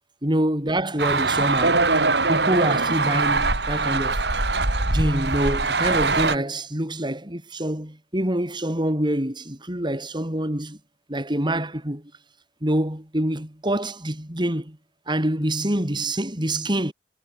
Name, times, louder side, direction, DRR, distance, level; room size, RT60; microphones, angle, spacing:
voice 1, 0.2-1.9 2.3-4.2 4.9-10.8 11.1-12.1 12.6-14.8 15.1-16.9, right 1 dB, 25° right, 4.4 m, -26 dB
sound 1, 1.0-6.4, right 3 dB, 75° right, 4.6 m, -22 dB
head